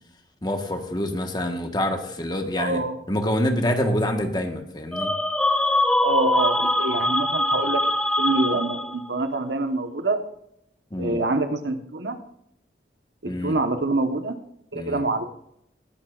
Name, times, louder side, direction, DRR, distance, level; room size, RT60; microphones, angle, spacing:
voice 1, 0.4-2.8 3.1-5.1 10.9-11.2 13.2-13.6 14.7-15.0, left 1 dB, 25° left, 5 dB, 1.4 m, -26 dB
voice 2, 2.6-3.0 6.0-7.9 8.2-10.2 11.0-12.2 13.2-14.3 14.7-15.2, right 2 dB, 80° right, 7 dB, 1.3 m, -25 dB
sound 1, 4.9-9.1, left 1 dB, 5° left, 0.5 m, -23 dB
20.0 x 10.5 x 2.5 m, 0.75 s
head